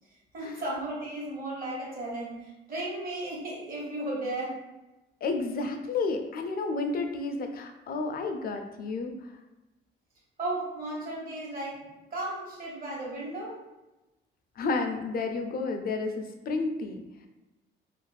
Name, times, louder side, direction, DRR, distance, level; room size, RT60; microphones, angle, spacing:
voice 1, 0.3-4.6 10.4-13.6, right 1 dB, 45° right, -4 dB, 1.2 m, -35 dB
voice 2, 5.2-9.1 14.6-17.0, left 3 dB, 50° left, 5 dB, 0.4 m, -31 dB
2.5 x 2.1 x 3.2 m, 1.0 s
cardioid pair, 90°, 20 cm